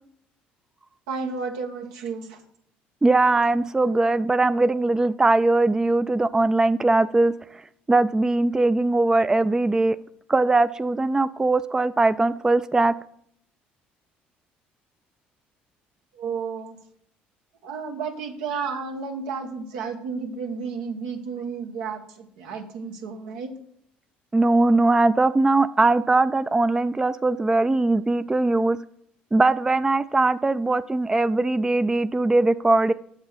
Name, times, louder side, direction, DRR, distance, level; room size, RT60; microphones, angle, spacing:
voice 1, 1.1-2.4 16.1-16.8 17.6-23.5, right 5 dB, 85° right, 3 dB, 1.3 m, -32 dB
voice 2, 3.0-7.3 7.9-10.0 10.3-12.9 24.3-28.8 29.3-32.9, right 2 dB, 15° right, 14 dB, 0.4 m, -20 dB
8.0 x 6.6 x 5.8 m, 0.68 s
hypercardioid pair, 65°, 4 cm